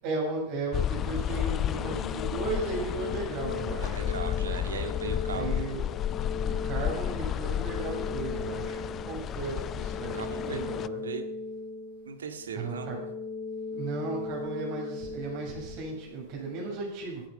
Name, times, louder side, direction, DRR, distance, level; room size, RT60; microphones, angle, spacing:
voice 1, 0.0-4.0 5.3-5.8 6.5-11.0 12.5-13.0 13.7-17.2, right 3 dB, 50° right, -1 dB, 7.2 m, -35 dB
sound 1, 0.7-10.9, left 10 dB, 30° left, 0.5 m, -32 dB
sound 2, 1.7-16.7, left 4 dB, 65° left, 3.5 m, -38 dB
voice 2, 3.8-5.7 9.5-9.7 10.1-10.6 11.0-11.2 12.1-12.9, right 5 dB, 75° right, 7 dB, 2.0 m, -38 dB
16.5 x 10.0 x 5.8 m, 0.82 s
figure-of-eight pair, 90°, 0 cm